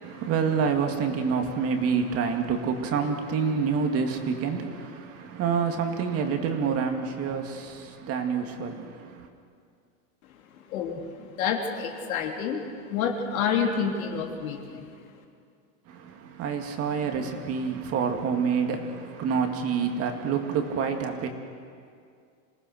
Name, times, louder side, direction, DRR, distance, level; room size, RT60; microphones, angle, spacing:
voice 1, 0.0-9.3 15.9-21.3, right 6 dB, 35° right, 2.1 m, -27 dB
voice 2, 10.5-14.9, left 6 dB, 85° left, 3.4 m, -29 dB
27.0 x 18.5 x 6.5 m
supercardioid pair, 150°, 41 cm